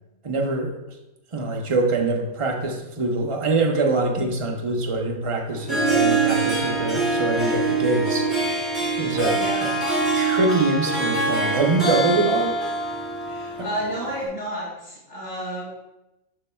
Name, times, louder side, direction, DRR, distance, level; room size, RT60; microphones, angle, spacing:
voice 1, 0.2-0.7 1.3-8.3 9.0-9.7 10.1-12.5 13.6-13.7, right 3 dB, 35° right, 2 dB, 0.5 m, -24 dB
Harp, 5.5-14.3, right 3 dB, ahead, 1.7 m, -24 dB
voice 2, 9.3-9.7 13.2-15.7, equal, 15° left, -11 dB, 2.3 m, -31 dB
6.8 x 6.8 x 2.3 m, 0.95 s
omnidirectional pair, 1.4 m